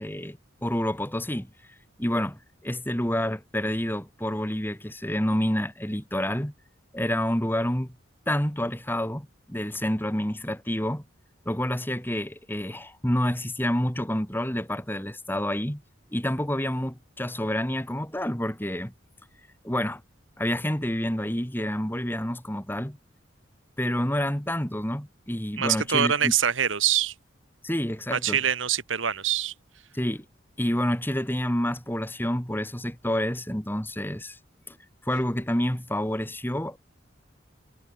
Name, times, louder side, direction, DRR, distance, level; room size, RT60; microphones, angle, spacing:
voice 1, 0.0-1.5 2.0-6.5 6.9-7.9 8.3-11.0 11.5-15.8 16.1-18.9 19.6-20.0 20.4-23.0 23.8-26.3 27.6-28.4 29.9-30.2 30.6-34.4 34.7-34.8 35.0-36.8, equal, 10° left, 3.6 m, -28 dB
voice 2, 25.6-27.1 28.1-29.5, right 9 dB, 75° right, 1.8 m, -24 dB
head